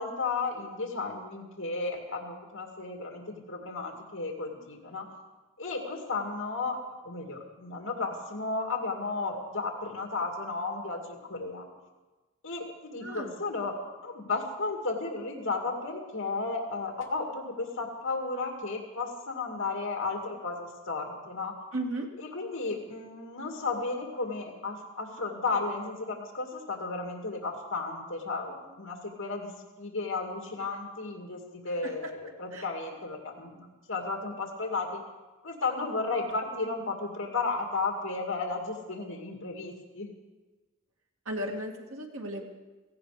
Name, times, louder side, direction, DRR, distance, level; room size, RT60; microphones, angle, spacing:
voice 1, 0.0-5.1 5.6-11.7 12.4-13.8 14.0-21.5 22.2-29.5 29.8-35.0 35.4-40.1, left 3 dB, 65° left, 1 dB, 2.3 m, -34 dB
voice 2, 13.0-13.4 21.7-22.1 31.8-31.9 32.5-32.7 41.3-42.5, right 1 dB, 75° right, 1 dB, 2.3 m, -35 dB
17.0 x 15.5 x 5.0 m, 1.2 s
head